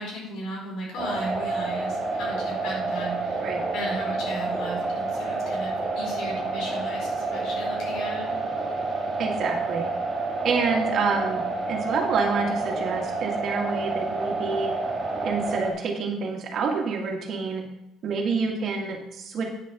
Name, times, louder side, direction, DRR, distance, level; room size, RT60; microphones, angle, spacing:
voice 1, 0.0-8.3, equal, 65° left, -2 dB, 4.4 m, -36 dB
sound 1, 1.0-15.7, right 3 dB, 25° right, 2.4 m, -29 dB
voice 2, 9.2-9.9 10.4-14.7 15.2-17.6 18.0-19.5, right 4 dB, 45° right, 2 dB, 1.8 m, -27 dB
9.1 x 6.3 x 5.9 m, 0.85 s
cardioid pair, 155°, 0 cm